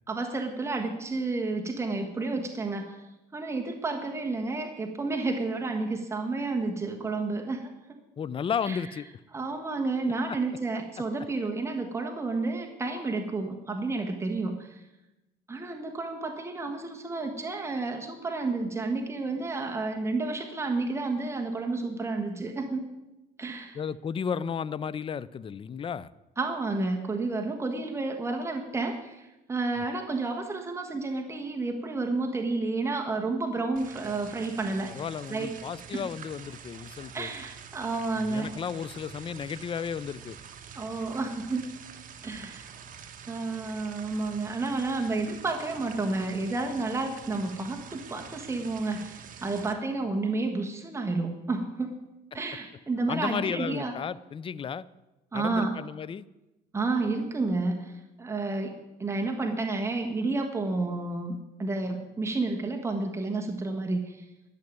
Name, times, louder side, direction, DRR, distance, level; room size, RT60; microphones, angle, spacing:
voice 1, 0.1-3.0 3.3-8.0 8.7-8.8 9.3-14.8 15.5-22.9 23.4-23.8 26.4-35.0 35.3-35.6 35.9-36.1 37.1-38.5 40.7-41.7 42.2-42.7 43.3-52.0 52.3-54.0 55.3-55.7 56.7-58.7 59.0-64.2, right 3 dB, 15° right, 2 dB, 1.4 m, -31 dB
voice 2, 8.2-9.1 23.7-26.1 34.9-37.3 38.2-40.4 53.1-54.8 55.3-56.2, left 7 dB, 30° left, 18 dB, 0.5 m, -33 dB
sound 1, 33.8-49.7, right 7 dB, 50° right, 1.3 m, -46 dB
12.5 x 6.6 x 9.2 m, 1.0 s
cardioid pair, 110°, 17 cm